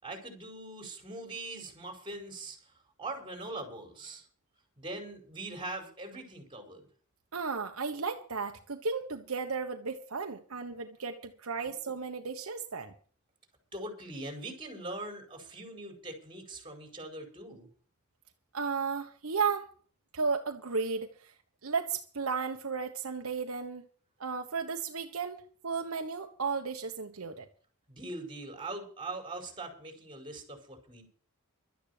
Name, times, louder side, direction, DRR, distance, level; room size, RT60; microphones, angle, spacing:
voice 1, 0.0-2.7 3.0-4.2 4.8-6.8 13.7-17.7 27.9-31.1, right 2 dB, 25° right, 5.0 m, -42 dB
voice 2, 7.3-12.9 18.5-19.7 20.1-21.3 21.6-23.9 24.2-25.4 25.6-27.5, right 5 dB, 75° right, 1.3 m, -34 dB
12.5 x 10.0 x 6.7 m
head